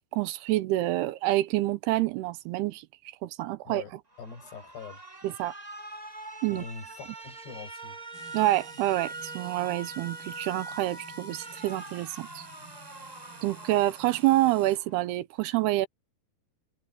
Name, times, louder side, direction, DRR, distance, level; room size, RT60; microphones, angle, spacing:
voice 1, 0.0-2.9 3.2-3.8 5.2-5.5 6.4-6.6 8.3-12.5 13.4-15.9, right 16 dB, 85° right, 2.7 m, -27 dB
voice 2, 3.7-5.0 6.5-8.0, left 5 dB, 80° left, 9.4 m, -43 dB
Alarm, 4.1-15.1, right 2 dB, 60° right, 0.4 m, -43 dB
sound 1, 8.1-14.8, right 3 dB, 45° right, 7.0 m, -51 dB
omnidirectional pair, 4.7 m